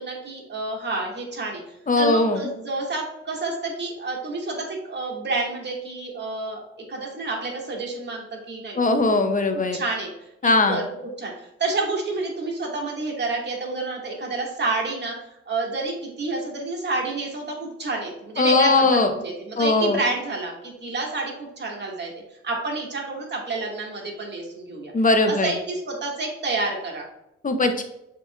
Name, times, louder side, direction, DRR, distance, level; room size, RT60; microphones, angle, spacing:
voice 1, 0.0-1.6 2.0-6.6 6.9-9.2 9.7-10.1 10.4-15.1 15.5-22.1 22.4-24.9 25.3-27.0, right 3 dB, 35° right, -1 dB, 1.7 m, -29 dB
voice 2, 1.9-2.4 8.8-9.8 10.4-10.8 18.4-19.1 19.6-20.0 24.9-25.5 27.4-27.8, left 3 dB, 25° left, 7 dB, 0.8 m, -19 dB
7.0 x 2.9 x 2.3 m, 0.85 s
supercardioid pair, 55°, 30 cm